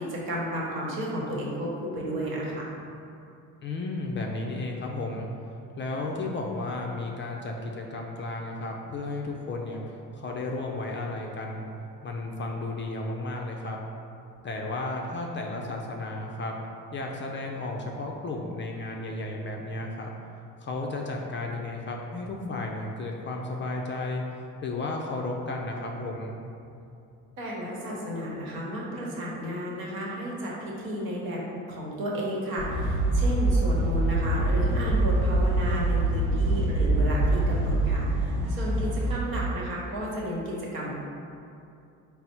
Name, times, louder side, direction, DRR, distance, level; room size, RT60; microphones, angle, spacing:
voice 1, 0.0-2.7 27.4-31.4 31.7-40.9, equal, 70° right, -4 dB, 1.1 m, -32 dB
voice 2, 3.6-5.3 5.8-9.8 10.1-11.6 12.0-13.8 14.4-16.5 16.9-20.1 20.6-24.2 24.6-26.4, left 2 dB, 35° left, 0 dB, 0.4 m, -33 dB
sound 1, 32.6-39.2, right 2 dB, 90° right, 0.6 m, -24 dB
4.1 x 2.0 x 4.2 m, 2.6 s
cardioid pair, 90°, 37 cm